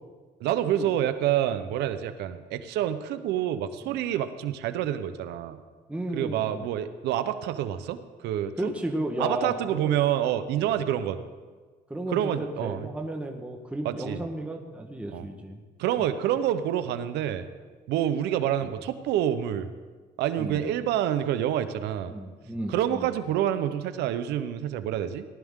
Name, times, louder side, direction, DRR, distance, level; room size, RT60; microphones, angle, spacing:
voice 1, 0.4-5.6 6.1-8.0 8.2-8.7 9.2-11.2 12.1-12.9 13.8-14.2 15.1-15.3 15.8-17.5 17.9-19.7 20.2-22.1 22.7-25.2, right 11 dB, 85° right, 11 dB, 0.8 m, -27 dB
voice 2, 5.9-6.7 8.6-10.0 10.6-10.8 11.9-15.6 20.4-20.6 22.1-23.1, right 1 dB, 5° right, 2 dB, 1.3 m, -33 dB
18.5 x 12.0 x 3.7 m, 1.4 s
cardioid pair, 110°, 17 cm